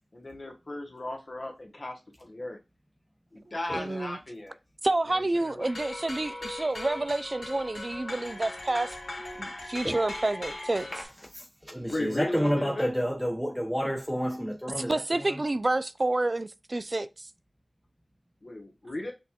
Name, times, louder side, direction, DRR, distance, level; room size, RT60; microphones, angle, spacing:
voice 1, 0.1-2.6 3.3-4.6 5.1-5.7 11.9-12.9 18.4-19.1, left 1 dB, 60° left, 0.9 m, -36 dB
voice 2, 3.7-4.2 4.8-9.0 9.4-10.9 14.9-17.3, right 2 dB, 50° right, 0.3 m, -29 dB
sound 1, 5.6-11.0, left 2 dB, 75° left, 1.7 m, -39 dB
voice 3, 11.3-15.4, equal, 5° right, 0.7 m, -30 dB
6.1 x 2.3 x 2.8 m
wide cardioid pair, 45°, 0 cm